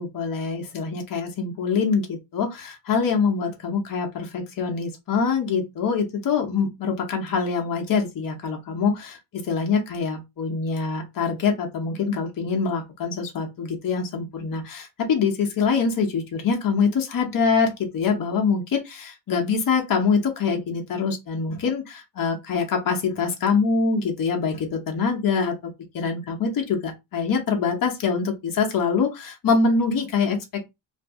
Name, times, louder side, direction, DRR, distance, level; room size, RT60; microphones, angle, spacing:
voice 1, 0.0-9.2 9.5-30.6, left 5 dB, 50° left, 0.8 m, -24 dB
2.6 x 2.5 x 3.5 m
wide cardioid pair, 180°, 44 cm